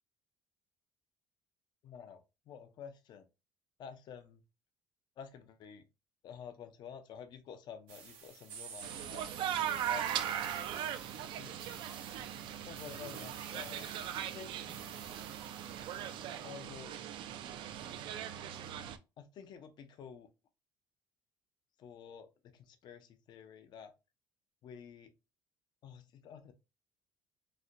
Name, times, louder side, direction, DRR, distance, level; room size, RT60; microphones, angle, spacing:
voice 1, 1.8-3.3 3.8-4.4 5.2-5.9 6.2-9.3 9.9-10.2 11.4-11.6 12.6-13.9 14.1-14.8 16.4-17.1 19.2-20.3 21.8-23.9 24.6-25.1 25.8-26.5, left 7 dB, 55° left, 0.5 m, -50 dB
sound 1, 7.9-16.3, right 7 dB, 90° right, 0.8 m, -51 dB
sound 2, 8.8-19.0, right 10 dB, 65° right, 0.4 m, -39 dB
4.1 x 2.1 x 2.5 m
cardioid pair, 130°, 9 cm